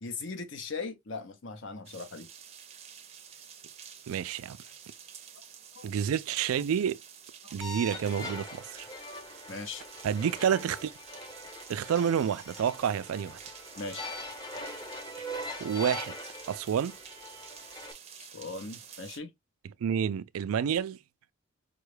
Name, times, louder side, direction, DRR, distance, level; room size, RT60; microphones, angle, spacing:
voice 1, 0.0-2.3 5.8-5.9 7.4-7.6 9.5-9.8 13.8-14.1 18.2-19.3, left 4 dB, 60° left, 0.6 m, -39 dB
sound 1, 1.9-19.2, right 8 dB, 30° right, 0.5 m, -50 dB
voice 2, 4.1-4.6 5.8-7.0 7.5-8.9 10.0-10.9 11.7-13.4 15.2-15.3 15.6-16.1 16.5-17.0 19.8-21.0, right 8 dB, 85° right, 0.3 m, -29 dB
sound 2, 7.6-17.9, left 1 dB, 20° left, 0.7 m, -42 dB
5.0 x 2.3 x 3.1 m
head